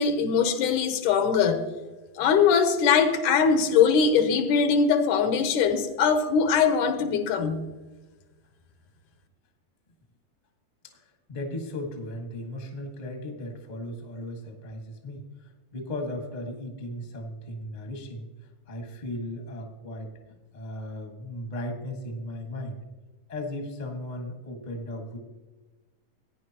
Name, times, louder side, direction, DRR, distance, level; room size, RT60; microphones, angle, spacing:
voice 1, 0.0-1.6 2.2-7.6, left 6 dB, 80° left, 2.3 m, -22 dB
voice 2, 10.9-18.3 18.7-20.1 20.5-22.8 23.3-25.2, left 1 dB, 30° left, 0.8 m, -36 dB
16.5 x 9.7 x 2.9 m
omnidirectional pair, 3.5 m